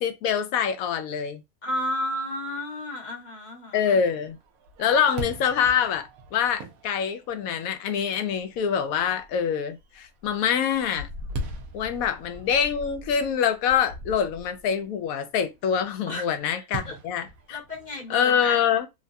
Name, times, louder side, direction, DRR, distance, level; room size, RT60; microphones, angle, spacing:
voice 1, 0.0-1.4 3.7-4.4 4.8-11.1 11.7-17.6 18.1-18.9, left 7 dB, 85° left, 1.1 m, -25 dB
voice 2, 1.6-4.0 12.0-12.1 16.1-17.0 17.5-18.6, left 1 dB, 35° left, 0.9 m, -33 dB
Fireworks, 4.3-7.8 8.4-8.5 9.0-9.4 9.8-14.6 16.7-18.1, right 1 dB, 85° right, 1.1 m, -39 dB
3.1 x 2.2 x 2.6 m
omnidirectional pair, 1.5 m